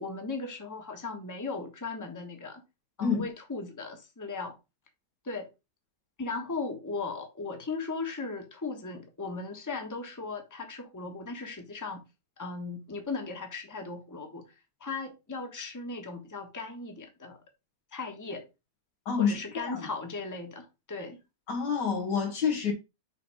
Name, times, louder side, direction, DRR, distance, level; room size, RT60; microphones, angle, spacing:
voice 1, 0.0-2.6 3.0-4.5 5.2-5.5 6.2-12.0 12.4-14.5 14.8-17.4 17.9-18.5 19.2-21.2, left 3 dB, 10° left, 1.1 m, -37 dB
voice 2, 19.1-19.8 21.5-22.7, left 6 dB, 90° left, 2.3 m, -28 dB
5.8 x 3.9 x 4.9 m
omnidirectional pair, 1.8 m